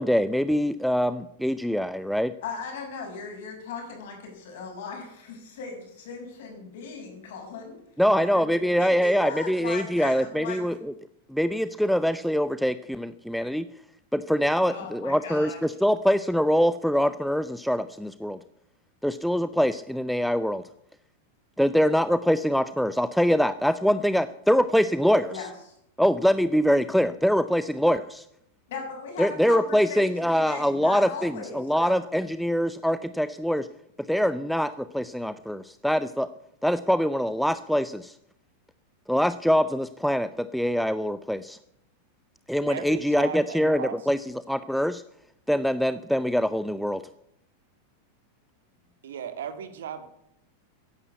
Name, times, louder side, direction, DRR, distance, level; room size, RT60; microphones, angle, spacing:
voice 1, 0.0-2.3 8.0-10.9 11.3-13.7 14.1-18.4 19.0-20.6 21.6-25.5 26.0-28.3 29.2-33.7 34.0-36.3 36.6-38.2 39.1-41.6 42.5-44.2 44.5-45.0 45.5-47.0, equal, ahead, 13 dB, 0.6 m, -24 dB
voice 2, 2.4-7.8 8.1-10.6 14.6-15.6 25.3-25.5 28.7-32.0, left 5 dB, 55° left, 2 dB, 6.9 m, -38 dB
voice 3, 42.7-44.0 49.0-50.0, right 8 dB, 60° right, 9 dB, 2.1 m, -36 dB
14.5 x 11.0 x 8.4 m, 0.76 s
figure-of-eight pair, 90°, 0 cm